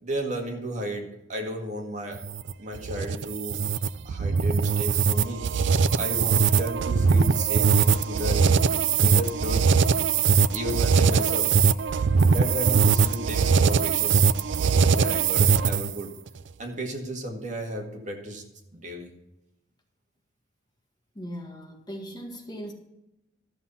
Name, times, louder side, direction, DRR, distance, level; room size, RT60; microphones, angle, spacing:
voice 1, 0.0-2.2 2.6-3.6 4.0-5.4 6.0-8.6 9.0-9.6 10.5-11.5 12.3-14.2 14.9-16.1 16.6-18.4 18.7-19.1, equal, 40° right, 1 dB, 2.0 m, -33 dB
sound 1, 2.1-16.0, right 5 dB, 65° right, 0.4 m, -21 dB
voice 2, 21.2-22.7, equal, 20° left, 1 dB, 1.7 m, -38 dB
13.0 x 7.2 x 5.5 m, 0.88 s
head